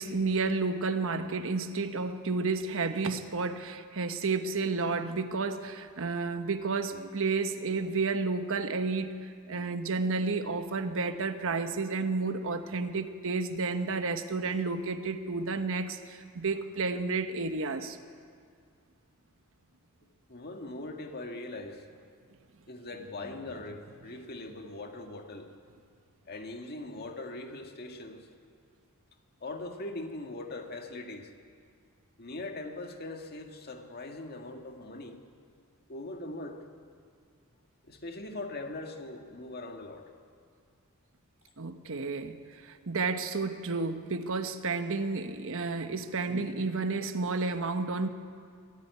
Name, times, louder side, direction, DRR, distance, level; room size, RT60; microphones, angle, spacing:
voice 1, 0.0-18.0 41.6-48.1, right 3 dB, 65° right, 8 dB, 1.1 m, -31 dB
voice 2, 20.3-21.8 22.7-25.5 26.3-28.3 29.4-31.3 32.2-35.2 35.9-36.6 37.9-40.1, left 2 dB, 45° left, 4 dB, 1.8 m, -41 dB
22.5 x 14.5 x 9.5 m, 2.2 s
head